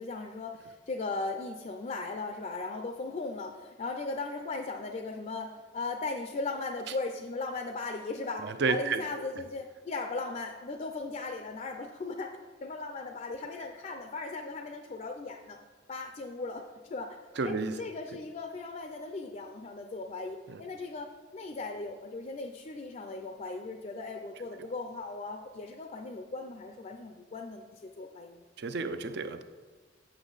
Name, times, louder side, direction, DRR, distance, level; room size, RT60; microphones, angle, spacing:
voice 1, 0.0-15.6 15.9-17.2 17.4-28.4, left 3 dB, 40° left, 5 dB, 0.4 m, -38 dB
voice 2, 8.4-9.0 17.4-17.8 20.5-20.6 24.6-24.7 28.6-29.4, right 4 dB, 65° right, 9 dB, 0.5 m, -31 dB
8.0 x 6.0 x 4.0 m, 1.3 s
head